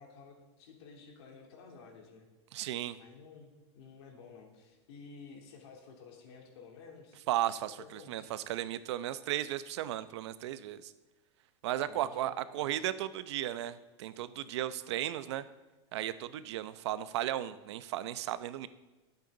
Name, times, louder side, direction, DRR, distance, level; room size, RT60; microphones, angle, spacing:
voice 1, 0.0-2.3 3.0-7.2 7.6-8.3 11.8-12.9, left 5 dB, 60° left, 1 dB, 3.2 m, -53 dB
voice 2, 2.5-3.0 7.3-10.9 11.6-15.4 15.9-18.7, right 13 dB, 65° right, 13 dB, 0.7 m, -35 dB
20.0 x 8.3 x 3.9 m, 1.1 s
supercardioid pair, 165°, 15 cm